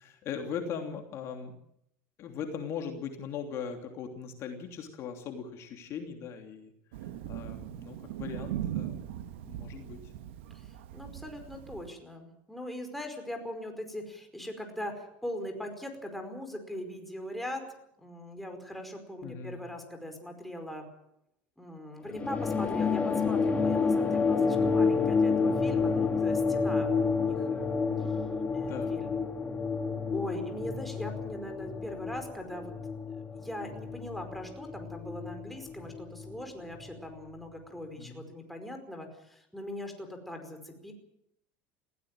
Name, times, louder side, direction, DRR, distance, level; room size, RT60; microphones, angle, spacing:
voice 1, 0.0-1.5 2.2-6.7 7.3-9.1 9.4-10.1 19.2-19.6 28.7-29.0 38.0-38.2, left 7 dB, 50° left, 4 dB, 3.0 m, -39 dB
Thunder, 6.9-11.9, right 11 dB, 90° right, 1.7 m, -39 dB
voice 2, 10.5-17.6 18.0-20.9 21.6-27.7 28.5-29.2 30.1-32.7 33.1-40.9, left 1 dB, ahead, 4 dB, 5.0 m, -40 dB
sound 1, 22.1-37.0, left 5 dB, 20° left, 2.6 m, -29 dB
20.0 x 16.5 x 9.0 m, 0.76 s
supercardioid pair, 120°, 6 cm